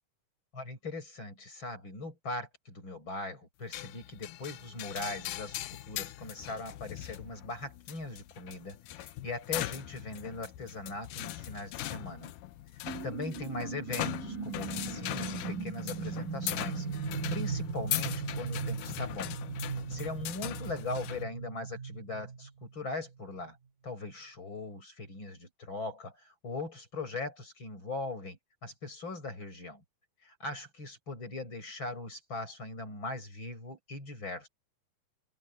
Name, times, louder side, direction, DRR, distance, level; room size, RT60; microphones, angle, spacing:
voice 1, 0.5-5.6 5.8-12.3 12.7-19.4 19.9-23.6 23.8-29.8 30.2-34.5, left 3 dB, 35° left, 8.2 m, -40 dB
sound 1, 3.7-21.2, left 15 dB, 75° left, 2.3 m, -40 dB
sound 2, 12.9-23.2, right 5 dB, 85° right, 5.9 m, -38 dB
open air
omnidirectional pair, 3.9 m